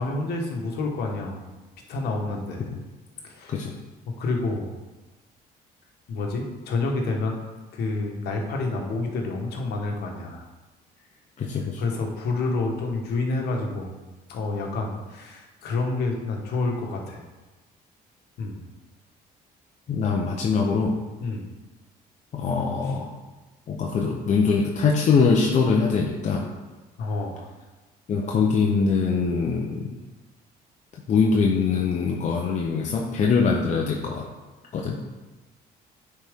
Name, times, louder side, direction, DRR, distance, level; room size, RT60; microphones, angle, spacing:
voice 1, 0.0-1.4 1.9-2.7 3.2-3.6 4.1-4.7 6.1-7.4 7.7-10.4 11.8-14.0 14.3-17.2 18.4-18.6 21.2-21.4 22.8-22.9 27.0-27.5, left 3 dB, 70° left, 1 dB, 1.4 m, -28 dB
voice 2, 11.4-11.8 19.9-21.0 22.3-23.1 23.7-26.5 28.1-29.9 31.1-34.3 34.7-35.0, left 5 dB, 45° left, -1 dB, 0.8 m, -23 dB
9.7 x 4.3 x 3.6 m, 1.2 s
cardioid pair, 110°, 17 cm